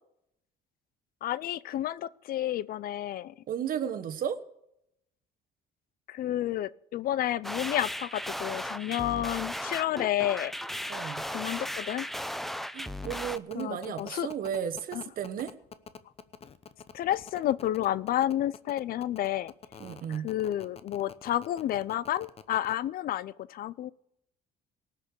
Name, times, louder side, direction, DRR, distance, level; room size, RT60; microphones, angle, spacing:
voice 1, 1.2-3.3 6.1-10.5 11.3-12.1 13.6-14.3 14.9-15.0 16.9-19.5 20.1-23.9, left 12 dB, 60° left, 20 dB, 0.5 m, -30 dB
voice 2, 3.5-4.4 10.9-11.2 12.7-15.5 19.8-20.3, right 8 dB, 60° right, 9 dB, 1.3 m, -34 dB
sound 1, 7.4-13.4, equal, ahead, 0.5 m, -36 dB
sound 2, 13.0-22.7, left 6 dB, 35° left, 0.9 m, -46 dB
18.5 x 6.6 x 8.4 m, 0.78 s
cardioid pair, 110°, 17 cm